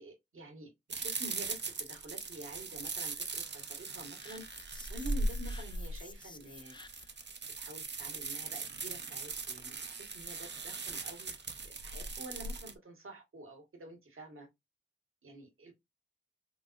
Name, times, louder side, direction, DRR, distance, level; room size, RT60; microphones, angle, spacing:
voice 1, 0.0-4.5 4.9-6.8 7.4-14.5 15.2-15.7, right 1 dB, 80° right, 1.7 m, -49 dB
sound 1, 0.9-12.7, right 3 dB, 55° right, 0.8 m, -39 dB
sound 2, 4.2-7.3, left 3 dB, 20° left, 0.5 m, -54 dB
5.4 x 2.1 x 2.5 m
cardioid pair, 55°, 21 cm